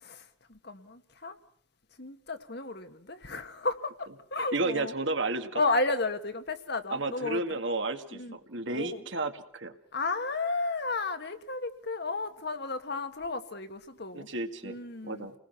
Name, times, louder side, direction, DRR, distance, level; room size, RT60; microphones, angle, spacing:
voice 1, 0.0-1.4 2.0-4.9 5.5-7.4 8.1-8.4 8.7-9.0 9.9-14.3 14.6-15.3, left 3 dB, 55° left, 1.6 m, -33 dB
voice 2, 4.5-5.6 6.9-9.7 14.1-14.8 15.0-15.3, right 2 dB, 65° right, 2.1 m, -32 dB
30.0 x 20.0 x 5.9 m
head